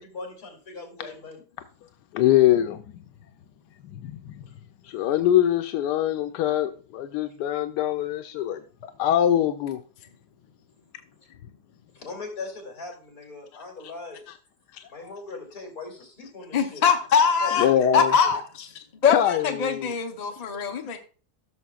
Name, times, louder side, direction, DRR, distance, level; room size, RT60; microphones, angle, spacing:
voice 1, 0.0-1.4 4.4-4.5 4.8-5.0 11.9-14.2 14.9-16.8 17.4-17.8 18.2-18.3, left 3 dB, 65° left, 3.1 m, -40 dB
voice 2, 2.1-3.0 3.8-4.4 4.8-8.6 9.0-9.8 14.7-14.9 17.6-18.1 19.0-20.0, left 11 dB, 90° left, 1.2 m, -23 dB
voice 3, 16.5-17.7 17.9-18.7 19.0-21.0, left 6 dB, 35° left, 0.8 m, -22 dB
15.0 x 6.5 x 2.4 m
omnidirectional pair, 1.7 m